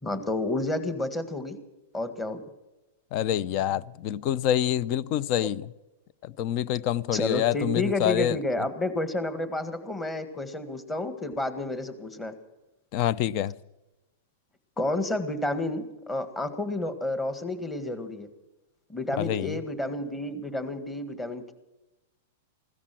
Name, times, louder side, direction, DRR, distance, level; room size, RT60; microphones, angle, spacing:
voice 1, 0.0-1.6 1.9-2.4 5.4-5.5 7.1-12.3 14.8-18.3 18.9-21.5, left 2 dB, 10° left, 1.8 m, -30 dB
voice 2, 3.1-5.6 6.2-8.4 12.9-13.5 19.2-19.6, left 11 dB, 45° left, 0.6 m, -26 dB
16.0 x 13.5 x 6.1 m
hypercardioid pair, 135°, 0 cm